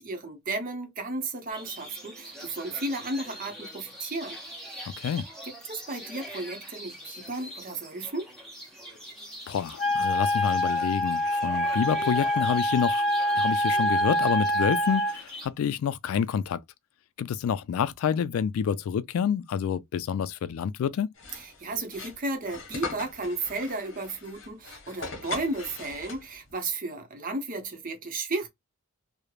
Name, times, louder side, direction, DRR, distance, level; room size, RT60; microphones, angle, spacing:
voice 1, 0.0-4.4 5.4-8.3 21.3-28.5, right 2 dB, 40° right, 0.7 m, -34 dB
sound 1, 1.5-15.5, right 1 dB, ahead, 0.9 m, -43 dB
voice 2, 9.5-13.0 13.3-16.6 17.2-21.1, left 8 dB, 80° left, 0.3 m, -28 dB
Wind instrument woodwind instrument, 9.8-15.2, equal, 35° left, 1.0 m, -25 dB
sound 2, 21.1-26.5, left 4 dB, 60° left, 0.9 m, -41 dB
3.1 x 2.0 x 2.2 m
head